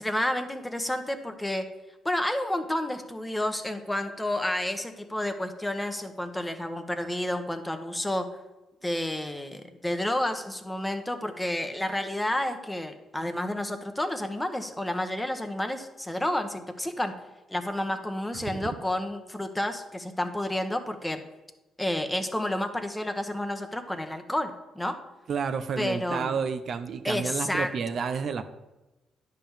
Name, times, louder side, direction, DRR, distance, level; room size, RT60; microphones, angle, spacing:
voice 1, 0.0-1.6 2.0-8.3 8.8-17.1 17.5-21.2 21.8-25.0 25.8-26.4 27.0-27.7, left 1 dB, 10° left, 7 dB, 1.1 m, -30 dB
voice 2, 25.3-28.4, right 6 dB, 60° right, 8 dB, 0.6 m, -30 dB
10.5 x 3.7 x 7.2 m, 1.0 s
supercardioid pair, 70°, 0 cm